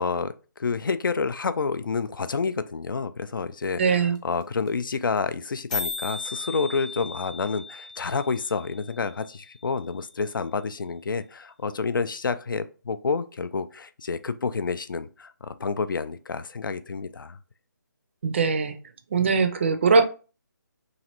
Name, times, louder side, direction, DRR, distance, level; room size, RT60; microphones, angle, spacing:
voice 1, 0.0-17.4, left 5 dB, 85° left, 0.4 m, -29 dB
sound 1, 3.6-3.7 3.9-4.0 4.2-4.4 4.7-4.8 4.9-5.2 5.4-5.5 5.7-9.7, left 3 dB, 20° left, 0.5 m, -36 dB
voice 2, 3.8-4.2 18.2-18.8 19.1-20.0, right 5 dB, 35° right, 0.4 m, -21 dB
3.1 x 2.5 x 2.8 m
hypercardioid pair, 160°, 11 cm